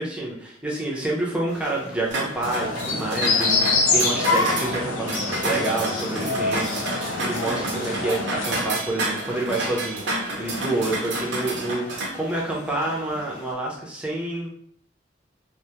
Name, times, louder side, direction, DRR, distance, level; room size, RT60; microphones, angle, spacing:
voice 1, 0.0-11.9 12.1-14.5, right 2 dB, 5° right, -4 dB, 0.5 m, -28 dB
sound 1, 1.5-13.5, left 1 dB, 40° left, 0.8 m, -42 dB
sound 2, 2.1-12.1, right 2 dB, 60° right, 0.5 m, -30 dB
sound 3, 2.4-8.6, left 3 dB, 85° left, 0.5 m, -25 dB
2.2 x 2.0 x 2.8 m, 0.67 s
head